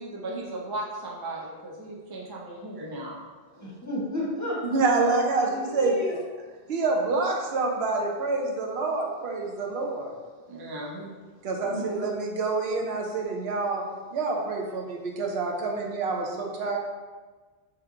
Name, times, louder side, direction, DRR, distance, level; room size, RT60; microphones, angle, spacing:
voice 1, 0.0-3.2 10.5-11.1, right 1 dB, 35° right, -4 dB, 0.4 m, -36 dB
voice 2, 3.5-6.2 11.6-11.9, left 1 dB, 20° left, -6 dB, 0.7 m, -33 dB
voice 3, 4.6-5.9 6.7-10.1 11.4-13.8 14.1-16.8, right 3 dB, 80° right, 1 dB, 0.9 m, -27 dB
3.4 x 2.9 x 3.6 m, 1.4 s
omnidirectional pair, 1.1 m